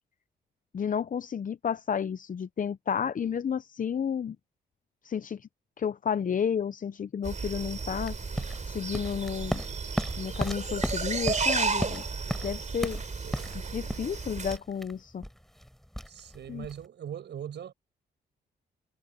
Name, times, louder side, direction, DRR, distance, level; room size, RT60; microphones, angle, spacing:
voice 1, 0.7-4.4 5.0-5.5 5.8-8.2 8.7-9.6 10.2-12.0 12.4-13.0 13.7-15.2 16.5-16.7, left 7 dB, 45° left, 0.7 m, -31 dB
sound 1, 7.2-14.6, right 4 dB, 40° right, 3.3 m, -33 dB
sound 2, 8.0-16.9, equal, ahead, 4.5 m, -36 dB
voice 2, 13.2-13.6 16.0-17.7, right 9 dB, 75° right, 5.8 m, -41 dB
cardioid pair, 65°, 19 cm